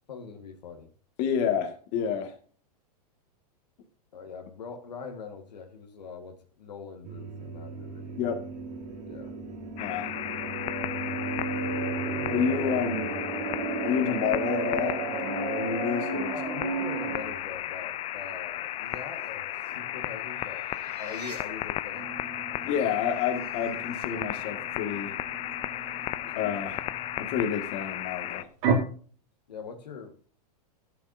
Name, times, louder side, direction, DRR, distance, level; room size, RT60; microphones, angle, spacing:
voice 1, 0.1-0.9 4.1-8.4 9.0-9.3 12.1-12.4 16.2-20.7 21.0-22.1 29.5-30.1, left 5 dB, 85° left, 4 dB, 1.7 m, -42 dB
voice 2, 1.2-2.3 8.2-8.4 9.8-10.1 12.3-13.1 13.8-16.3 22.6-25.1 26.3-26.8 27.2-28.4, left 7 dB, 50° left, 5 dB, 1.9 m, -29 dB
sound 1, 7.0-17.5 20.8-21.4 23.9-24.3, right 4 dB, 80° right, 2.8 m, -34 dB
sound 2, 9.8-28.4, left 14 dB, 30° left, 0.5 m, -35 dB
sound 3, 21.9-28.7, right 6 dB, 50° right, 2.7 m, -36 dB
11.5 x 9.9 x 2.7 m, 0.43 s
hypercardioid pair, 115°, 21 cm